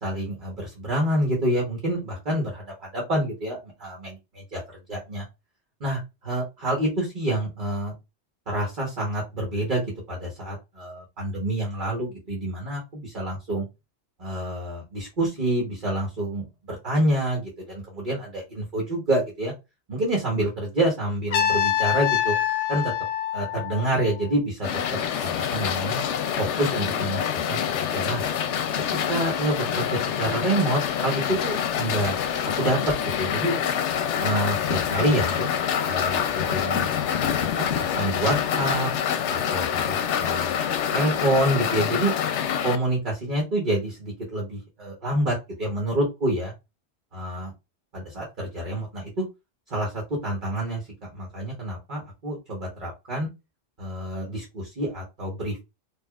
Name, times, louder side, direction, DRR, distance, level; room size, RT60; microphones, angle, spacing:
voice 1, 0.0-4.6 4.9-5.2 5.8-7.9 8.5-13.6 14.2-19.5 19.9-22.3 22.7-22.9 23.3-24.7 25.2-26.0 26.4-28.2 29.1-29.8 30.2-32.2 32.6-33.5 34.2-35.5 35.9-36.9 37.2-38.9 39.3-40.6 40.9-42.1 42.6-46.5 47.1-47.5 47.9-49.2 49.7-53.3 53.8-55.6, right 1 dB, 45° right, -2 dB, 1.3 m, -27 dB
Trumpet, 21.3-24.3, left 11 dB, 65° left, 0.8 m, -25 dB
sound 1, 24.6-42.8, left 8 dB, 90° left, 0.9 m, -26 dB
4.7 x 2.7 x 2.3 m, 0.24 s
omnidirectional pair, 1.2 m